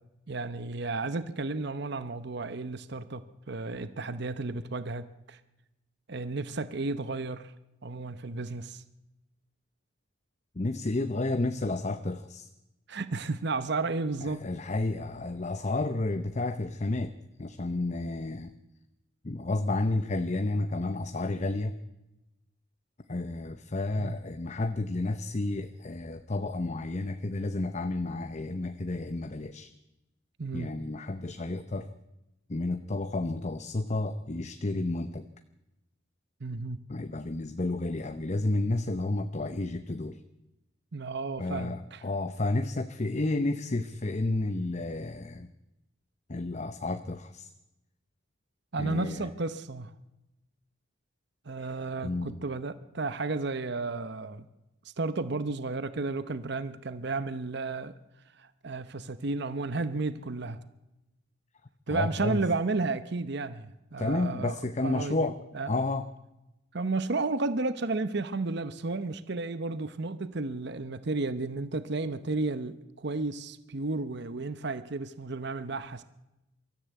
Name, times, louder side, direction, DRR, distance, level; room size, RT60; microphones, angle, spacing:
voice 1, 0.3-3.2 3.5-5.4 6.1-7.5 7.8-8.8 12.9-14.4 24.0-24.2 30.4-30.7 36.4-36.8 40.9-42.0 48.7-49.9 51.5-54.5 55.0-57.9 58.4-60.6 61.9-64.5 64.8-65.3 65.5-65.7 66.7-76.0, right 3 dB, 55° right, 13 dB, 0.8 m, -33 dB
voice 2, 10.6-12.5 14.2-17.1 17.4-18.5 19.2-21.7 23.1-29.7 30.5-31.9 32.5-35.3 36.9-40.2 41.4-45.5 46.3-47.5 48.8-49.3 51.6-51.7 52.0-52.4 61.9-62.4 64.0-65.4 65.7-66.1, left 2 dB, 35° left, 9 dB, 0.7 m, -31 dB
23.5 x 14.0 x 8.2 m, 0.96 s
head